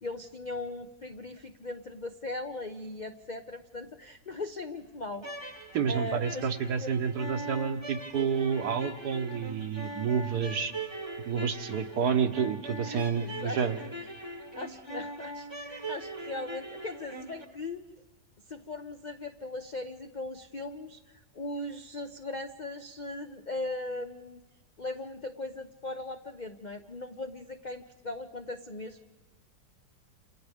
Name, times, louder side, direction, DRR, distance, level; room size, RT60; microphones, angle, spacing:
voice 1, 0.0-5.6 5.9-6.5 6.8-6.9 12.8-13.6 14.5-17.8 18.5-24.4 24.8-29.2, left 2 dB, 55° left, 6 dB, 0.5 m, -39 dB
sound 1, 5.1-17.4, right 2 dB, 20° right, 1.0 m, -41 dB
voice 2, 5.7-10.7 11.3-13.8, right 6 dB, 70° right, 8 dB, 1.5 m, -29 dB
28.5 x 28.0 x 3.6 m, 1.1 s
omnidirectional pair, 1.8 m